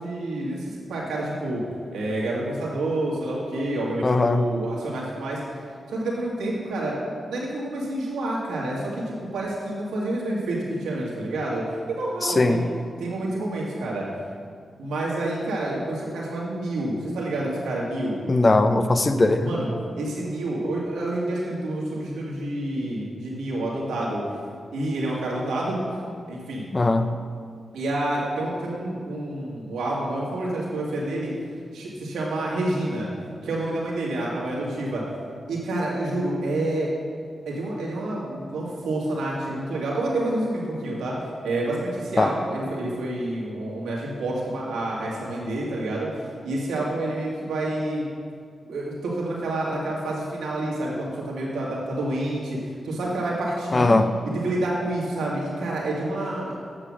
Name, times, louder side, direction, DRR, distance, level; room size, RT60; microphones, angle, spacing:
voice 1, 0.0-1.6 1.9-5.4 5.9-7.0 7.3-12.7 13.0-14.1 14.8-18.2 19.4-19.7 20.0-24.2 24.7-26.0 26.3-26.7 27.7-31.3 31.7-33.1 33.4-35.0 35.5-36.9 37.5-41.1 41.4-48.0 48.7-53.9 54.3-56.6, right 1 dB, 90° right, -5 dB, 2.2 m, -28 dB
voice 2, 4.0-4.4 12.2-12.6 18.3-19.5 26.7-27.1 42.2-42.3 53.7-54.1, left 2 dB, 35° left, 9 dB, 0.7 m, -19 dB
8.6 x 6.9 x 6.3 m, 2.2 s
cardioid pair, 50°, 0 cm